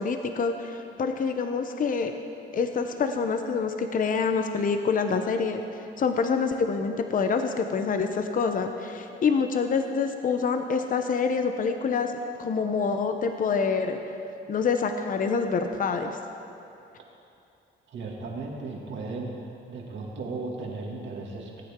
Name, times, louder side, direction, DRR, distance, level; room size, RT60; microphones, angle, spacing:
voice 1, 0.0-2.1 2.5-5.6 6.0-12.1 12.4-14.0 14.5-16.2, left 5 dB, 45° left, 6 dB, 0.8 m, -26 dB
voice 2, 17.9-19.3 19.7-21.6, right 3 dB, 70° right, -2 dB, 2.3 m, -35 dB
20.0 x 9.0 x 3.7 m, 2.7 s
cardioid pair, 90°, 20 cm